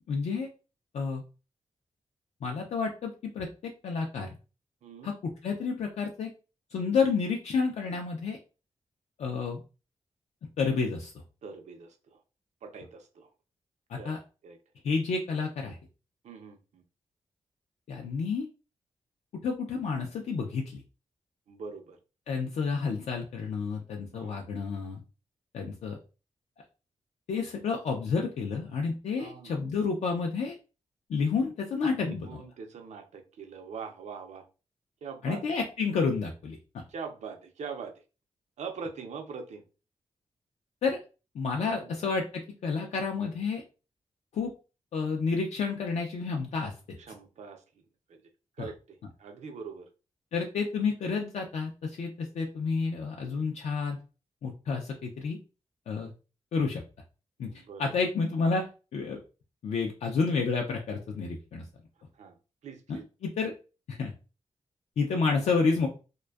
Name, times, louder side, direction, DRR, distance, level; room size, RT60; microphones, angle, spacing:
voice 1, 0.1-0.5 0.9-1.2 2.4-4.3 5.0-5.1 5.4-6.3 6.7-8.4 9.2-9.6 10.6-11.1 13.9-14.2 14.8-15.8 17.9-18.5 19.4-20.8 22.3-25.0 25.5-26.0 27.3-30.5 31.1-32.3 35.2-36.6 40.8-41.0 41.3-42.2 42.6-43.6 44.3-44.5 44.9-46.7 48.6-48.7 50.3-54.0 54.4-55.4 55.9-56.1 56.5-56.8 57.4-57.5 57.8-59.2 59.6-61.6 63.2-63.5 63.9-64.1 65.0-65.9, left 4 dB, 75° left, 2 dB, 0.4 m, -30 dB
voice 2, 4.8-5.1 11.4-12.2 12.6-13.3 14.0-14.1 14.4-14.6 16.2-16.8 21.5-22.0 24.1-24.4 29.2-29.5 31.8-34.5 35.0-35.5 36.9-37.9 38.6-39.6 41.6-41.9 47.0-47.8 48.1-48.2 48.6-49.9 57.4-58.1 62.1-62.4 62.6-63.0, right 5 dB, 85° right, 5 dB, 0.5 m, -43 dB
2.5 x 2.2 x 2.2 m, 0.32 s
wide cardioid pair, 130°, 11 cm